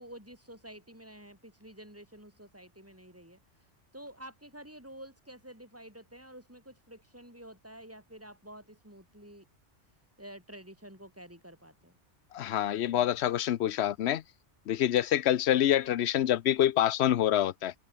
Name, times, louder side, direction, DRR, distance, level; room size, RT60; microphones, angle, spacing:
voice 1, 0.0-3.4 3.9-9.5 10.2-12.0, right 1 dB, 10° right, 7.2 m, -49 dB
voice 2, 12.3-14.2 14.7-17.7, left 11 dB, 65° left, 0.9 m, -26 dB
omnidirectional pair, 1.2 m